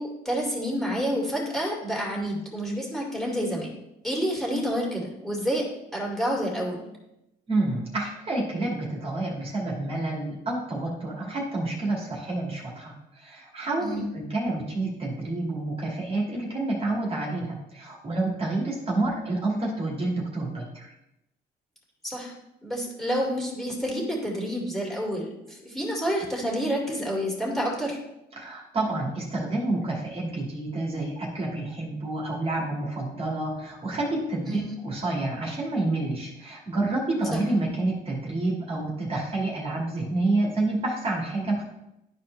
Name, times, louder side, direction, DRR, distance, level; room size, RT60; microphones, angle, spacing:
voice 1, 0.0-3.8 4.0-5.7 5.9-6.9 13.8-14.1 18.9-19.1 22.0-22.3 22.6-28.0 34.4-34.8 37.3-37.4, equal, ahead, -3 dB, 2.4 m, -29 dB
voice 2, 7.5-20.9 28.4-41.6, right 2 dB, 35° right, -2 dB, 1.9 m, -29 dB
12.0 x 4.5 x 3.2 m, 0.87 s
cardioid pair, 110°, 17 cm